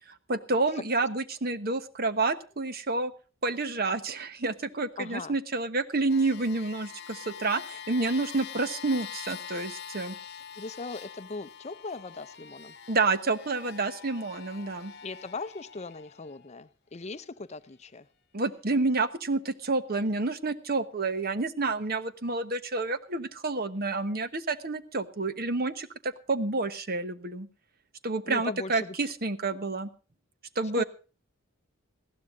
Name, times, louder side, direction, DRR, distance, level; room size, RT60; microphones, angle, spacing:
voice 1, 0.3-3.1 3.4-10.1 12.9-14.9 18.3-27.5 28.0-29.9 30.6-30.8, right 3 dB, 45° right, 11 dB, 1.1 m, -29 dB
voice 2, 5.0-5.4 7.7-7.8 10.6-12.8 15.0-18.1 28.3-29.0 30.7-30.8, left 3 dB, 30° left, 13 dB, 0.6 m, -39 dB
sound 1, 6.1-16.5 17.3-17.4, left 8 dB, 50° left, 1.0 m, -44 dB
20.0 x 15.5 x 2.6 m, 0.35 s
head